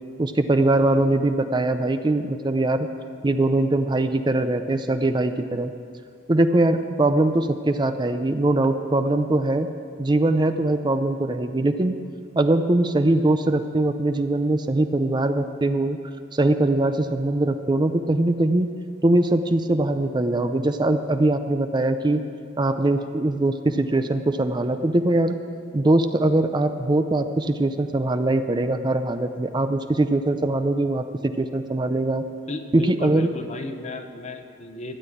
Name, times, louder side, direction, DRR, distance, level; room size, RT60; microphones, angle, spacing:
voice 1, 0.2-2.9 3.2-5.7 6.3-9.7 10.0-12.0 12.4-16.0 16.3-18.7 19.0-22.2 22.6-25.4 25.7-32.2 32.7-33.3, right 2 dB, 25° right, 9 dB, 0.5 m, -22 dB
voice 2, 32.5-35.0, left 2 dB, 35° left, 7 dB, 0.9 m, -34 dB
13.0 x 9.5 x 8.4 m, 2.4 s
head